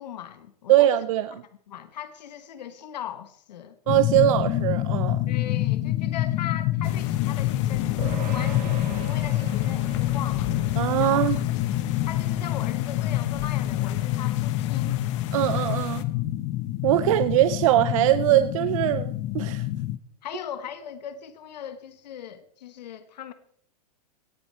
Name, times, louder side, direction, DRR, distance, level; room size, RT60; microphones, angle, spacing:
voice 1, 0.0-1.0 1.7-3.8 5.3-10.6 11.0-11.3 12.0-15.0 20.2-23.3, left 9 dB, 80° left, 1.3 m, -39 dB
voice 2, 0.7-1.4 3.9-5.2 10.8-11.4 15.3-16.0 16.8-19.6, right 14 dB, 50° right, 0.6 m, -22 dB
sound 1, 3.9-20.0, left 15 dB, 30° left, 0.6 m, -27 dB
sound 2, 6.8-16.0, left 11 dB, 45° left, 1.0 m, -38 dB
sound 3, 8.0-17.7, right 8 dB, 80° right, 1.8 m, -44 dB
18.0 x 8.1 x 4.4 m
supercardioid pair, 150°, 21 cm